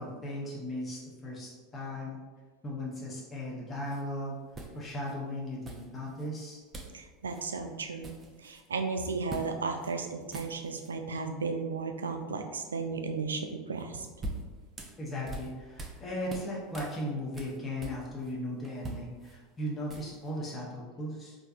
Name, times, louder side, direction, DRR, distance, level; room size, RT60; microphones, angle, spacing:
voice 1, 0.0-2.2 2.6-4.4 4.7-6.6 15.0-21.4, left 1 dB, 25° left, -4 dB, 0.8 m, -37 dB
sound 1, 3.9-4.0 4.5-5.1 5.6-6.3 6.7-7.0 7.3-7.5 7.8-8.7 9.3-9.5 9.8-9.9 10.2-10.9 13.8-16.0 16.3-18.3 18.6-20.3, right 2 dB, 25° right, 0.5 m, -43 dB
voice 2, 6.9-8.2 8.4-14.1, right 4 dB, 80° right, 5 dB, 0.3 m, -34 dB
4.3 x 2.6 x 2.3 m, 1.4 s
figure-of-eight pair, 80°, 0 cm